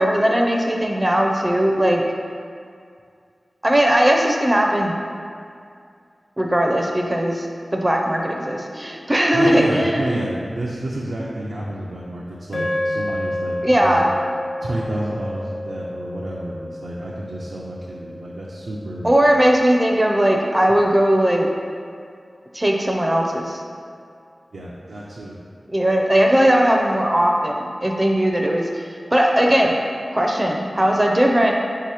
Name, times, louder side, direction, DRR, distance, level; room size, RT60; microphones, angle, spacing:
voice 1, 0.0-2.0 3.6-4.9 6.4-7.5 7.7-10.2 13.6-14.1 19.0-21.5 22.5-23.6 25.7-29.7 30.1-31.5, equal, 25° right, 1 dB, 0.4 m, -18 dB
voice 2, 9.3-14.0 14.6-19.1 24.5-25.4, right 1 dB, 80° right, -5 dB, 0.4 m, -29 dB
sound 1, 12.5-20.9, left 1 dB, 75° left, 0.7 m, -31 dB
3.9 x 2.8 x 4.8 m, 2.3 s
wide cardioid pair, 60°, 0 cm